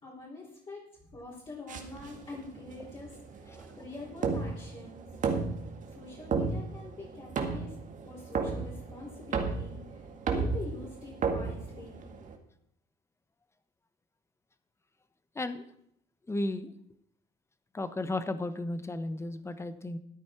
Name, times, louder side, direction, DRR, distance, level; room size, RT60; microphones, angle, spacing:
voice 1, 0.0-5.1 5.9-7.7 8.1-10.1 10.3-12.1, left 3 dB, 30° left, -5 dB, 4.3 m, -45 dB
sound 1, 1.7-12.4, right 4 dB, 50° right, 2.0 m, -34 dB
voice 2, 16.3-16.7 17.7-20.0, left 2 dB, 15° left, 11 dB, 1.0 m, -34 dB
13.5 x 10.5 x 4.6 m, 0.71 s
cardioid pair, 110°, 17 cm